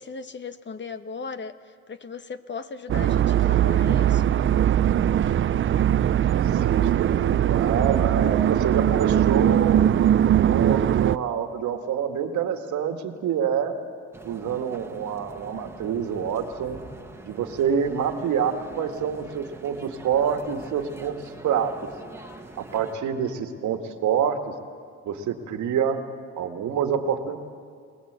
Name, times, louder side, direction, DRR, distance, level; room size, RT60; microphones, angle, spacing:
voice 1, 0.0-4.2, left 5 dB, 40° left, 11 dB, 1.0 m, -37 dB
sound 1, 2.9-11.2, right 10 dB, 45° right, 0.5 m, -20 dB
voice 2, 6.3-10.0 10.4-13.7 14.2-16.8 17.2-21.2 21.4-21.7 22.6-24.4 25.1-26.0 26.4-27.4, right 7 dB, 75° right, 6 dB, 1.8 m, -27 dB
sound 2, 14.1-22.9, right 2 dB, 10° right, 1.5 m, -44 dB
23.5 x 19.0 x 8.1 m, 2.2 s
cardioid pair, 90°, 30 cm